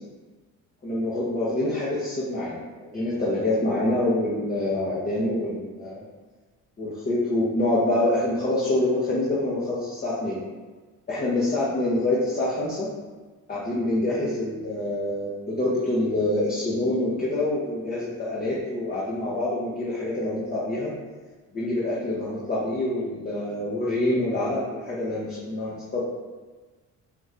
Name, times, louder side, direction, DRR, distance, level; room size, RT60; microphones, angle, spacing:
voice 1, 0.8-6.0 6.8-10.4 11.1-12.9 13.5-20.9 21.5-26.0, left 1 dB, 25° left, -7 dB, 0.9 m, -26 dB
5.1 x 2.6 x 3.2 m, 1.3 s
cardioid pair, 120°, 33 cm